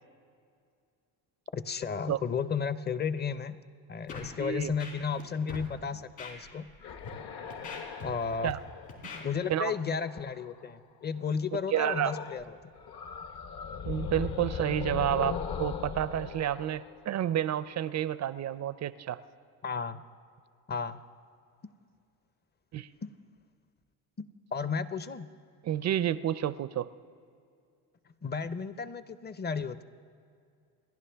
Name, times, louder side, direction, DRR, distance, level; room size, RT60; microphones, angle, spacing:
voice 1, 1.5-3.6 3.9-6.7 8.0-8.5 9.2-12.6 19.6-20.0 20.7-21.0 23.0-23.1 24.2-24.3 24.5-25.3 28.2-29.8, left 6 dB, 25° left, 14 dB, 0.6 m, -33 dB
Scratching (performance technique), 4.1-4.3 4.6-5.2 5.5-5.7 6.2-6.3 6.9-7.1 7.5-8.5 8.9-9.2, left 4 dB, 90° left, 3.5 m, -42 dB
voice 2, 4.4-4.7 8.4-8.6 9.5-9.7 11.7-12.1 13.9-19.2 22.7-22.9 25.6-26.9, right 11 dB, 40° right, 16 dB, 0.4 m, -30 dB
sound 1, 6.7-10.6 11.7-12.5 12.8-17.6, left 6 dB, 55° left, 1.1 m, -39 dB
29.5 x 11.0 x 3.4 m, 2.3 s
cardioid pair, 90°, 44 cm